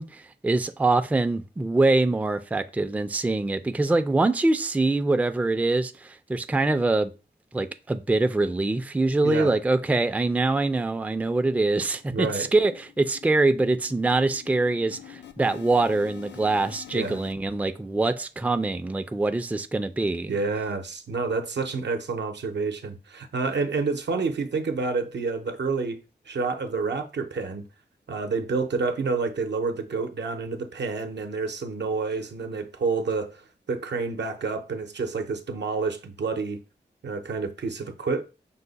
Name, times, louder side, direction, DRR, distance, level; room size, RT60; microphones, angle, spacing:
voice 1, 0.0-7.1 7.5-20.4, right 2 dB, 10° right, 0.3 m, -24 dB
voice 2, 9.2-9.5 12.1-12.5 16.9-17.2 20.3-26.0 26.3-27.7 28.1-33.4 33.7-36.6 37.0-38.2, right 4 dB, 75° right, 0.6 m, -28 dB
sound 1, 10.5-10.6 10.9-11.1 11.4-17.3, left 10 dB, 80° left, 0.4 m, -47 dB
5.5 x 2.1 x 3.9 m
cardioid pair, 60°, 18 cm